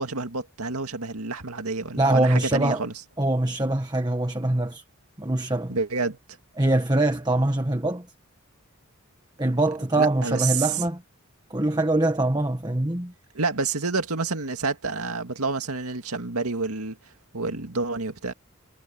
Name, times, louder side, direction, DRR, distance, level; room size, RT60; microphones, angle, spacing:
voice 1, 0.0-2.9 5.7-6.2 9.9-10.7 13.3-17.0 17.3-18.3, right 3 dB, 90° right, 2.1 m, -28 dB
voice 2, 2.0-2.8 3.2-4.8 5.2-5.8 6.6-8.1 9.4-11.0 11.5-13.1, right 1 dB, 20° right, 1.5 m, -23 dB
head